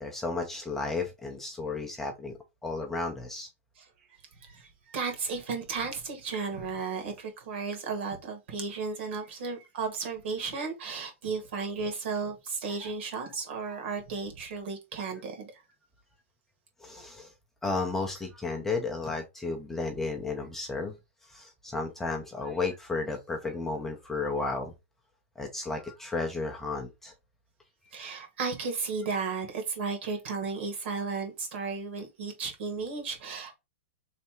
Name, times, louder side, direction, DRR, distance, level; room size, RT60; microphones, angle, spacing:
voice 1, 0.0-3.5 13.7-13.8 16.8-17.3 17.6-20.9 21.3-24.7 25.4-27.1, left 3 dB, 5° left, 0.5 m, -33 dB
voice 2, 4.4-15.5 27.9-33.5, right 4 dB, 60° right, 1.5 m, -34 dB
3.3 x 2.6 x 4.3 m
hypercardioid pair, 160°, 7 cm